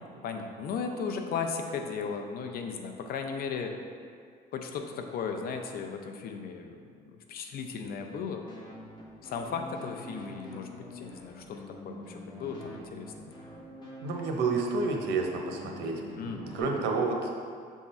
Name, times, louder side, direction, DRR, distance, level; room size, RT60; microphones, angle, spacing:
voice 1, 0.2-3.7 4.5-6.8 7.3-8.5 9.2-13.1 16.2-17.0, left 5 dB, 65° left, 5 dB, 0.6 m, -36 dB
sound 1, 8.5-16.6, left 1 dB, 25° left, 1.5 m, -46 dB
voice 2, 14.0-16.0 16.3-17.3, right 4 dB, 85° right, 1 dB, 0.9 m, -30 dB
7.0 x 3.7 x 4.2 m, 2.2 s
cardioid pair, 110°, 17 cm